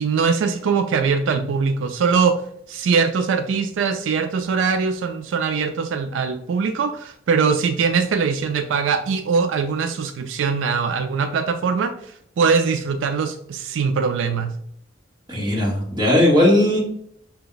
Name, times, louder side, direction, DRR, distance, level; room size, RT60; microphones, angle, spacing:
voice 1, 0.0-2.4 2.7-11.9 12.4-14.5, right 5 dB, 80° right, 8 dB, 0.4 m, -21 dB
voice 2, 15.3-16.8, left 1 dB, 20° right, -3 dB, 1.3 m, -17 dB
5.9 x 2.3 x 3.8 m, 0.69 s
head